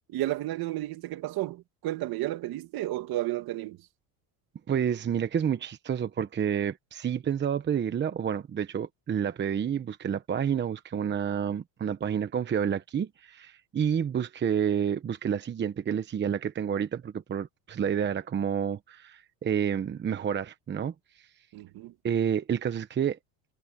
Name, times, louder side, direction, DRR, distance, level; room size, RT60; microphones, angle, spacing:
voice 1, 0.1-3.9 21.5-21.9, right 16 dB, 55° right, 2.3 m, -32 dB
voice 2, 4.7-21.3 22.0-23.2, right 8 dB, 25° right, 1.0 m, -29 dB
cardioid pair, 125°, 44 cm